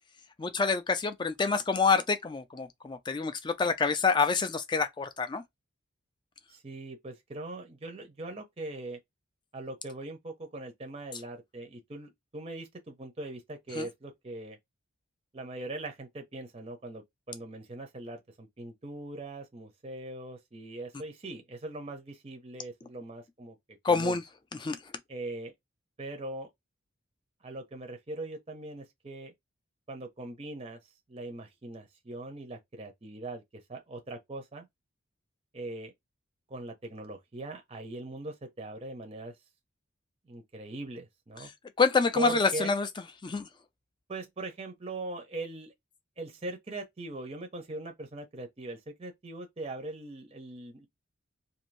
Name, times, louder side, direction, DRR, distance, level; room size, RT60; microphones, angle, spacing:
voice 1, 0.4-5.4 13.7-13.9 23.8-24.2 24.6-24.8 41.8-42.9 43.2-43.5, left 4 dB, 20° left, 0.3 m, -27 dB
voice 2, 6.5-9.0 9.5-14.6 15.3-23.6 23.9-24.2 25.1-25.5 26.0-26.5 27.4-29.3 29.9-30.8 31.1-34.7 35.5-35.9 36.5-39.3 40.3-41.5 42.1-42.7 44.1-45.7 46.2-50.9, right 2 dB, 30° right, 0.6 m, -40 dB
2.6 x 2.6 x 3.1 m
head